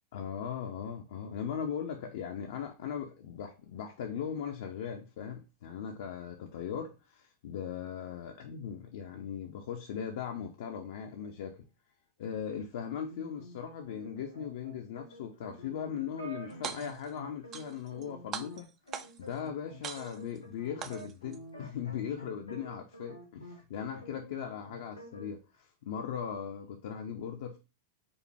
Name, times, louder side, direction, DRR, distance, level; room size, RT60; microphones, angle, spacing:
voice 1, 0.1-11.6 12.2-18.7 19.2-27.6, left 8 dB, 55° left, 0.5 m, -39 dB
sound 1, 13.1-23.6 23.9-25.3, equal, 80° left, 0.8 m, -49 dB
sound 2, 16.5-17.1 17.5-18.0 18.3-19.3 19.8-20.4 20.8-21.4, right 8 dB, 30° right, 0.4 m, -41 dB
5.2 x 2.2 x 3.2 m
figure-of-eight pair, 90°, 0 cm